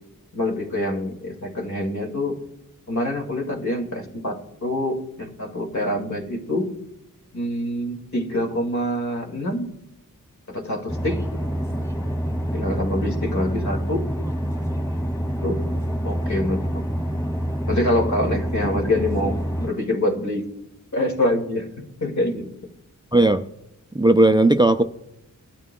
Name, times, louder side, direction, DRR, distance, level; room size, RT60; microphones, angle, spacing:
voice 1, 0.3-2.4 2.9-6.7 7.3-9.7 10.5-11.2 12.5-14.0 15.4-15.6 16.0-16.9 17.7-20.4 20.9-22.5, left 1 dB, 60° left, 2.2 m, -25 dB
sound 1, 10.9-19.7, equal, 10° left, 2.3 m, -26 dB
voice 2, 23.1-23.4 23.9-24.8, right 2 dB, 15° right, 0.4 m, -16 dB
21.5 x 12.5 x 2.3 m
wide cardioid pair, 105°, 33 cm